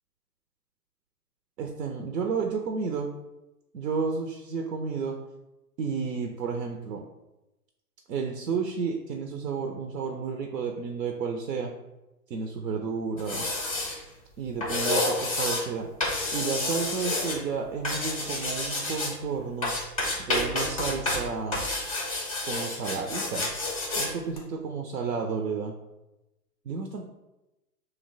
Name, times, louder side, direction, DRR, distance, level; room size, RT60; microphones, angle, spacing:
voice 1, 1.6-3.1 3.7-5.2 5.8-7.1 8.1-11.7 12.3-13.5 14.4-15.9 16.3-19.7 20.2-21.7 22.4-23.5 24.0-25.7 26.7-27.0, right 5 dB, 80° right, 2 dB, 0.6 m, -31 dB
sound 1, 13.2-14.0 14.6-15.6 16.0-17.4 17.8-19.1 19.6-21.2 21.5-24.1 24.4-24.5, left 2 dB, 25° left, 0.3 m, -29 dB
2.8 x 2.1 x 3.9 m, 0.98 s
hypercardioid pair, 120°, 49 cm